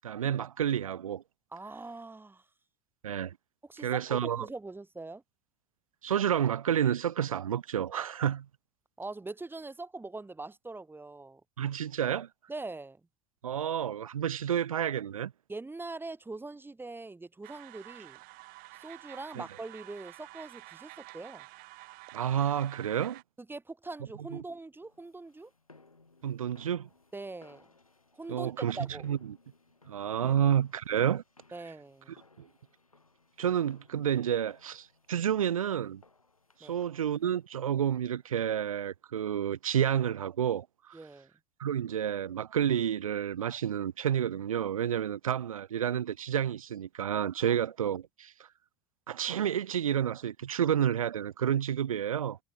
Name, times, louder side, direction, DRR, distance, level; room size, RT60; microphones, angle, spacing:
voice 1, 0.0-1.2 3.0-3.4 3.8-4.5 6.0-8.5 11.6-12.3 13.4-15.3 19.4-19.5 22.1-23.2 24.3-24.4 26.2-26.9 28.3-29.4 29.9-31.2 32.4-32.5 33.4-36.0 36.6-41.0 41.6-48.3 49.1-52.4, right 9 dB, 80° right, 0.5 m, -30 dB
voice 2, 1.5-2.4 3.6-5.2 9.0-11.4 12.5-13.0 15.5-18.2 18.8-21.5 23.4-25.5 27.1-27.7 28.1-29.1 30.2-30.3 31.5-32.2 36.6-36.7 40.9-41.3 47.5-47.6, right 3 dB, 10° right, 1.6 m, -42 dB
sound 1, 17.4-23.2, right 24 dB, 55° right, 2.0 m, -50 dB
sound 2, 24.8-38.7, left 3 dB, 90° left, 2.8 m, -64 dB
figure-of-eight pair, 65°, 18 cm